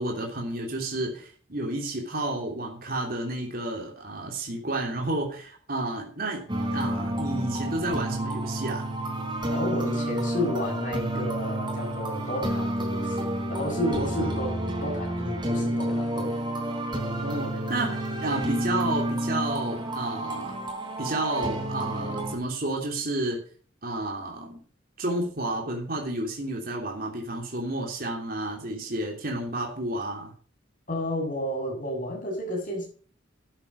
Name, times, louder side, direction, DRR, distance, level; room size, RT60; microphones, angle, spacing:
voice 1, 0.0-6.5 6.7-8.9 14.0-14.3 17.2-20.6 21.0-23.4 23.8-24.6 25.0-30.3, right 2 dB, 50° right, 3.2 m, -31 dB
sound 1, 6.5-22.4, right 1 dB, 25° right, 3.8 m, -30 dB
voice 2, 9.5-16.4 30.9-32.9, left 1 dB, 40° left, 7.6 m, -31 dB
13.0 x 8.9 x 5.5 m
head